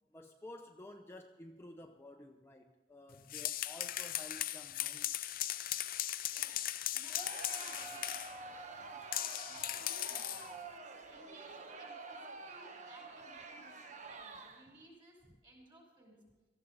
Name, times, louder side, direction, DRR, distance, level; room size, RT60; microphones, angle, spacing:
voice 1, 0.1-5.1 15.3-15.4, left 1 dB, 15° left, 3 dB, 0.7 m, -52 dB
sound 1, 3.1-8.4 9.1-10.5, left 13 dB, 55° left, 0.5 m, -38 dB
voice 2, 6.3-6.6 6.9-13.8 14.1-16.2, right 2 dB, 30° right, -1 dB, 5.6 m, -60 dB
Crowd, 7.1-14.8, right 3 dB, 45° right, 1.1 m, -48 dB
18.0 x 14.0 x 4.0 m, 1.1 s
head